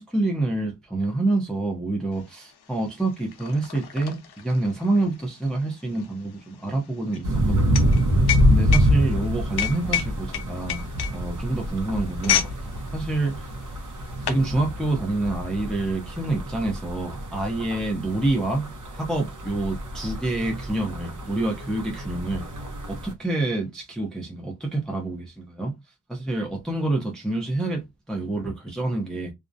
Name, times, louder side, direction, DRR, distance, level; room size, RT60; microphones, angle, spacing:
voice 1, 0.0-7.9 8.5-10.8 11.1-12.4 12.9-13.5 14.2-22.4 22.9-25.7 26.1-29.3, right 2 dB, ahead, 0.5 m, -27 dB
sound 1, 2.3-2.4 2.6-12.6 12.9-13.2 13.8-14.5, left 9 dB, 80° left, 0.6 m, -29 dB
sound 2, 7.2-23.1, equal, 50° right, 0.6 m, -26 dB
2.4 x 2.0 x 2.5 m
wide cardioid pair, 120°, 39 cm